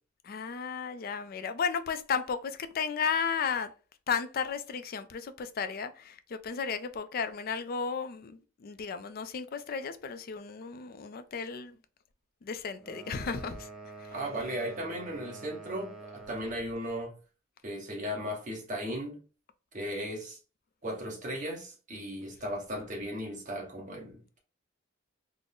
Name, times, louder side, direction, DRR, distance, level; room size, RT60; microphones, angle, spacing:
voice 1, 0.2-3.7 4.1-11.8 12.4-13.7 14.0-14.1, left 6 dB, 50° left, 0.4 m, -34 dB
sound 1, 12.8-16.7, right 3 dB, 5° right, 0.7 m, -47 dB
voice 2, 14.1-17.1 17.6-19.2 19.7-20.4 20.8-24.4, equal, 40° right, 1.2 m, -36 dB
3.7 x 2.0 x 3.7 m
head